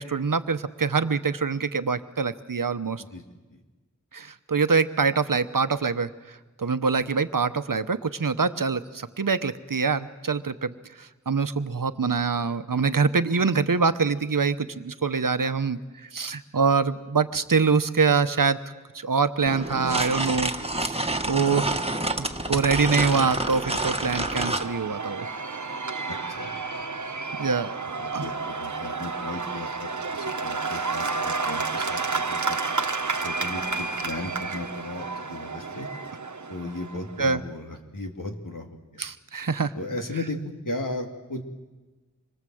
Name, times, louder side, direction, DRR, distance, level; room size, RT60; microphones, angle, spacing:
voice 1, 0.0-3.0 4.1-6.1 6.6-10.7 11.0-18.6 18.9-21.8 22.2-25.3 27.4-27.7 28.1-28.2 37.2-37.4 39.0-39.7, right 5 dB, 90° right, 11 dB, 1.0 m, -25 dB
sound 1, 19.5-24.7, right 2 dB, 20° right, 1.6 m, -28 dB
Cheering / Applause / Crowd, 22.5-37.2, right 4 dB, 60° right, 1.2 m, -31 dB
voice 2, 26.1-26.5 28.0-32.6 33.2-35.9 36.5-38.8 39.7-41.4, left 2 dB, 75° left, 3 dB, 2.8 m, -36 dB
26.5 x 23.0 x 7.8 m, 1.2 s
wide cardioid pair, 45°, 32 cm